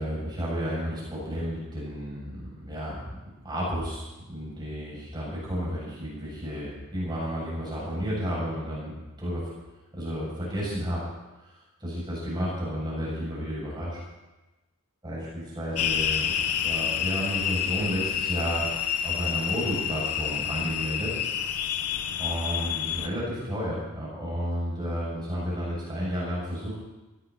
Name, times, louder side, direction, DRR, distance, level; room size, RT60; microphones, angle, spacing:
voice 1, 0.0-3.2 3.4-8.9 9.2-9.5 9.9-11.0 11.8-14.0 15.0-18.7 19.0-21.2 22.2-26.8, equal, 20° right, -6 dB, 6.9 m, -32 dB
sound 1, 15.7-23.1, left 9 dB, 90° left, 1.0 m, -29 dB
19.5 x 15.5 x 4.2 m, 1.1 s
head